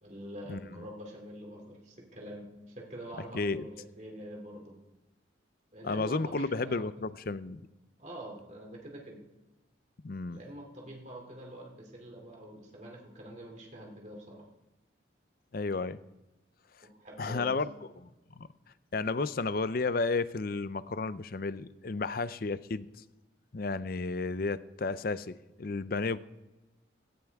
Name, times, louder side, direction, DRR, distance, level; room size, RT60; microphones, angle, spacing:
voice 1, 0.0-4.7 5.7-6.8 8.0-9.2 10.3-14.5 16.8-17.6, right 1 dB, 40° right, 0 dB, 2.8 m, -45 dB
voice 2, 3.3-3.7 5.8-7.6 10.0-10.4 15.5-16.0 17.2-17.7 18.0-18.1 18.4-18.5 18.9-22.9 23.5-26.2, left 3 dB, 50° left, 15 dB, 0.5 m, -32 dB
17.5 x 14.5 x 3.6 m, 1.0 s
head